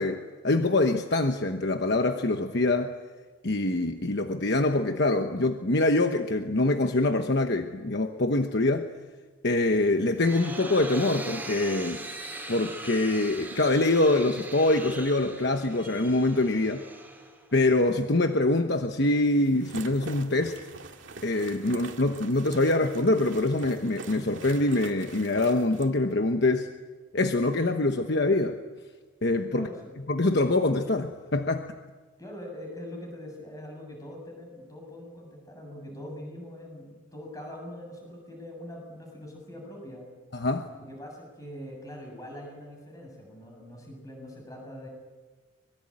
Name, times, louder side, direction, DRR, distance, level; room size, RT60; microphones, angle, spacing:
voice 1, 0.0-2.9 3.4-8.9 9.4-12.0 12.5-16.8 17.5-20.6 21.2-26.7 27.1-28.6 29.2-29.7 30.1-31.7 40.3-40.7, left 2 dB, 55° left, 6 dB, 1.1 m, -24 dB
sound 1, 9.8-17.7, right 2 dB, 10° right, 4.3 m, -40 dB
sound 2, 19.4-25.9, right 3 dB, 65° right, 2.2 m, -44 dB
voice 2, 29.5-29.9 32.2-40.1 40.7-44.9, left 1 dB, 15° left, 1 dB, 7.8 m, -43 dB
25.0 x 22.0 x 8.9 m, 1.4 s
head